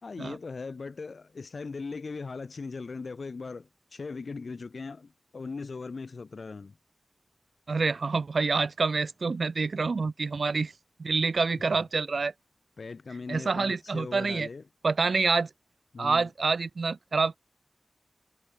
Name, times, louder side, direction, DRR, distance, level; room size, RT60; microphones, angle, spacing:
voice 1, 0.0-6.8 12.8-14.6 15.9-16.3, left 4 dB, 70° left, 0.8 m, -39 dB
voice 2, 7.7-10.7 11.0-12.3 13.3-14.5 14.8-15.5 16.0-17.4, right 4 dB, 70° right, 0.4 m, -27 dB
wide cardioid pair, 95°, 0 cm